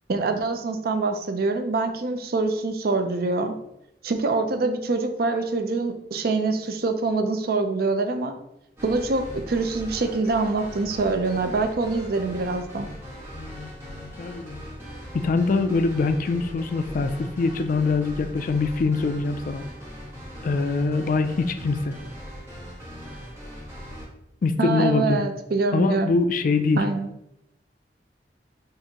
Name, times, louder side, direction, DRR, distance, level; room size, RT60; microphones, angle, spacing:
voice 1, 0.1-3.5 4.0-8.4 8.8-12.9 24.6-26.1 26.8-27.1, right 3 dB, 60° right, 7 dB, 0.5 m, -25 dB
sound 1, 8.8-24.1, equal, 15° right, 1.3 m, -40 dB
voice 2, 13.4-14.6 15.1-19.6 20.4-21.9 24.4-25.2 25.7-26.8, left 3 dB, 50° left, 8 dB, 0.3 m, -24 dB
6.5 x 2.5 x 2.9 m, 0.84 s
head